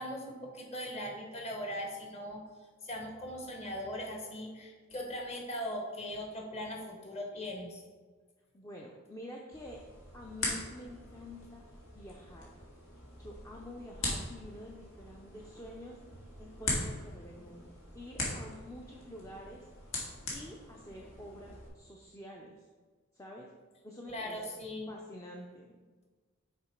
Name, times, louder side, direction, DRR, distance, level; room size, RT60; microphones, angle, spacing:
voice 1, 0.0-2.4 2.8-7.8 24.1-24.9, equal, 30° left, 1 dB, 1.1 m, -39 dB
voice 2, 8.5-9.8 10.1-12.5 13.2-16.0 16.4-19.7 20.3-22.7 23.1-23.5 23.8-24.4 24.9-25.8, left 1 dB, 15° left, -1 dB, 0.5 m, -48 dB
sound 1, 9.5-21.7, left 2 dB, 75° left, 1.9 m, -41 dB
6.7 x 4.8 x 4.5 m, 1.4 s
head